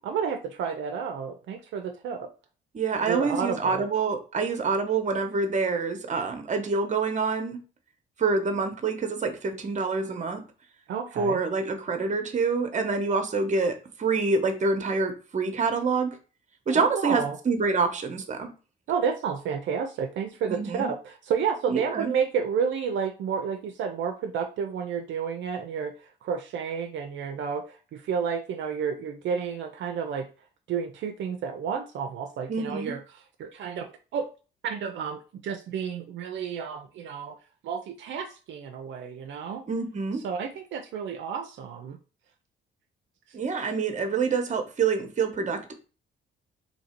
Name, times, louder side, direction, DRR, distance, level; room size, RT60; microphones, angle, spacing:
voice 1, 0.0-2.3 3.1-3.9 10.9-11.4 16.7-17.4 18.9-25.9 26.2-30.3 30.7-33.0 33.4-34.3 34.6-37.4 37.6-39.6 40.2-42.0, right 6 dB, 70° right, 5 dB, 0.5 m, -31 dB
voice 2, 2.7-7.6 8.2-10.4 11.2-16.2 16.7-18.5 20.5-20.9 21.7-22.1 32.5-32.9 39.7-40.2 43.3-45.7, right 4 dB, 40° right, 6 dB, 0.9 m, -26 dB
2.8 x 2.7 x 4.3 m, 0.35 s
cardioid pair, 90°, 20 cm